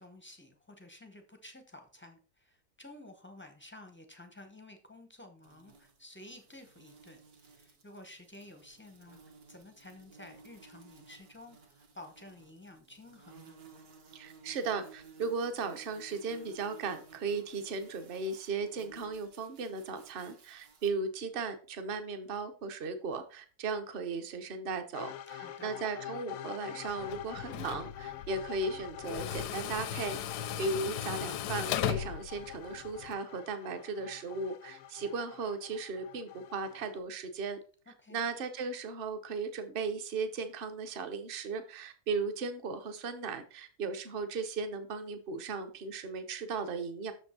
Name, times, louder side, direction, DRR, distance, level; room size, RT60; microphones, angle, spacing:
voice 1, 0.0-9.2 9.5-13.6 25.3-25.7 37.9-38.2, left 1 dB, 15° left, 0.3 m, -52 dB
sound 1, 5.4-20.9, right 5 dB, 65° right, 1.7 m, -57 dB
voice 2, 14.1-30.2 30.6-37.6 38.1-47.1, right 4 dB, 45° right, 0.8 m, -36 dB
sound 2, 24.9-37.0, left 11 dB, 65° left, 0.8 m, -46 dB
Tools, 26.9-33.1, left 10 dB, 85° left, 1.2 m, -37 dB
6.5 x 5.3 x 4.2 m
omnidirectional pair, 1.7 m